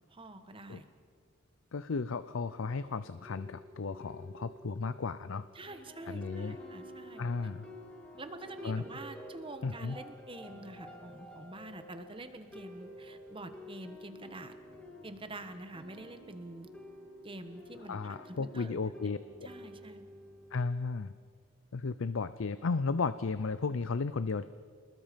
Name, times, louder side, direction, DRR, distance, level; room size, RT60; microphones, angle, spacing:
voice 1, 0.1-0.8 5.5-7.2 8.2-14.5 15.0-16.7 17.2-18.8 19.0-19.1 19.4-20.0, right 2 dB, 25° right, 9 dB, 1.2 m, -46 dB
voice 2, 1.7-5.4 6.1-6.6 7.2-7.7 8.6-8.8 9.6-10.0 17.9-19.5 20.5-21.1 21.7-24.4, left 4 dB, 65° left, 13 dB, 0.5 m, -34 dB
sound 1, 2.5-20.5, left 1 dB, 5° left, 2.3 m, -50 dB
27.5 x 20.0 x 5.2 m, 2.1 s
head